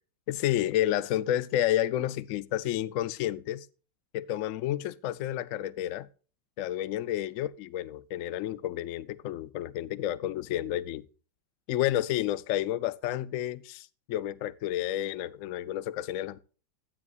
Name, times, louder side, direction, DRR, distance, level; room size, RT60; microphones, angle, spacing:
voice 1, 0.3-3.7 4.1-6.1 6.6-11.0 11.7-16.4, left 12 dB, 85° left, 0.7 m, -30 dB
12.0 x 9.8 x 2.4 m
omnidirectional pair, 2.0 m